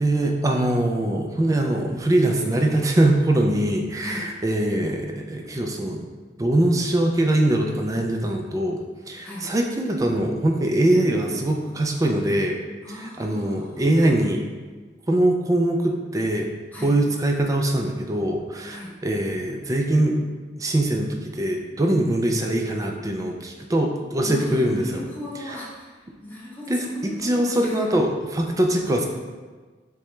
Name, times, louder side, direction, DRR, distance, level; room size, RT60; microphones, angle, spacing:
voice 1, 0.0-6.0 6.4-8.8 9.1-12.6 12.9-14.4 15.1-16.5 16.8-20.2 20.6-25.0 25.5-25.6 26.7-29.1, right 1 dB, 20° right, 3 dB, 0.4 m, -22 dB
voice 2, 4.0-4.3 9.2-9.5 12.8-14.2 16.7-17.0 18.7-18.9 24.2-27.9, left 1 dB, 10° left, -6 dB, 0.8 m, -37 dB
6.6 x 2.2 x 3.2 m, 1.4 s
head